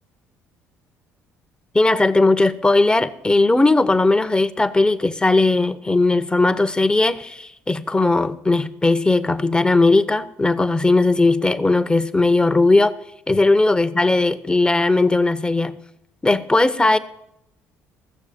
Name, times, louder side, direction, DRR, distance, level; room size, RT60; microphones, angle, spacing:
voice 1, 1.7-12.9 13.3-15.8 16.2-17.0, left 2 dB, 15° left, 0.8 m, -18 dB
15.0 x 6.8 x 6.9 m
supercardioid pair, 70°, 6 cm